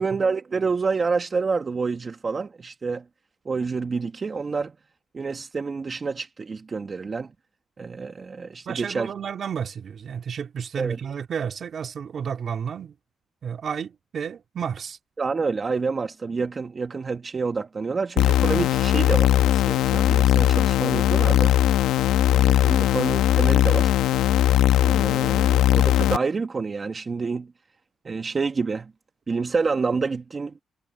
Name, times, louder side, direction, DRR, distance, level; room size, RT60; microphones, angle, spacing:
voice 1, 0.0-3.0 3.4-4.7 5.1-7.3 7.8-9.1 10.8-11.0 15.2-21.5 22.3-23.9 24.8-27.5 28.0-28.9 29.3-30.5, right 4 dB, 35° right, 1.3 m, -28 dB
voice 2, 8.7-12.9 13.4-15.0, right 7 dB, 50° right, 2.1 m, -31 dB
sound 1, 18.2-26.2, left 13 dB, 85° left, 0.9 m, -19 dB
cardioid pair, 90°, 0 cm